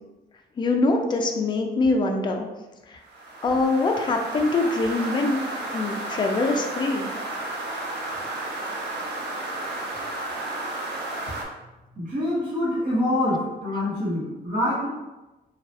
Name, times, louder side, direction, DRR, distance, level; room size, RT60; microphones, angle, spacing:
voice 1, 0.6-2.5 2.9-3.0 3.4-5.4 5.7-7.1, left 3 dB, 25° left, 3 dB, 0.3 m, -23 dB
sound 1, 3.1-11.4, right 2 dB, 85° right, 0.5 m, -32 dB
voice 2, 12.0-14.9, left 1 dB, 50° right, -9 dB, 1.0 m, -25 dB
3.1 x 2.3 x 2.7 m, 1.1 s
wide cardioid pair, 145°, 17 cm